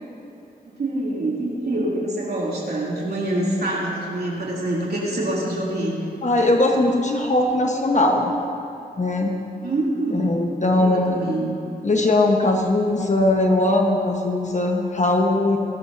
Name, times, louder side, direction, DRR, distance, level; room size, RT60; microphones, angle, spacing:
voice 1, 0.8-6.0 9.6-10.4 10.7-11.5, right 1 dB, 70° right, -5 dB, 3.0 m, -25 dB
voice 2, 6.2-8.3 9.0-9.3 10.1-11.2 11.8-15.6, left 2 dB, 45° left, 1 dB, 1.2 m, -20 dB
22.0 x 12.5 x 2.7 m, 2.8 s
cardioid pair, 55°, 17 cm